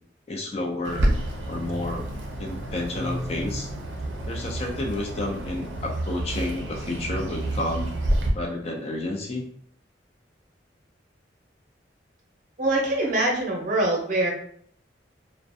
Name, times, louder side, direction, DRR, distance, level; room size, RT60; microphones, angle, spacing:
voice 1, 0.3-1.1 1.5-2.0 2.4-3.7 4.3-7.9 8.3-9.5, left 2 dB, 35° left, 1 dB, 0.4 m, -30 dB
Bird, 0.8-8.3, right 1 dB, 85° right, 0.4 m, -29 dB
voice 2, 12.6-14.3, right 2 dB, 45° right, -1 dB, 0.7 m, -23 dB
2.4 x 2.1 x 2.6 m, 0.63 s
head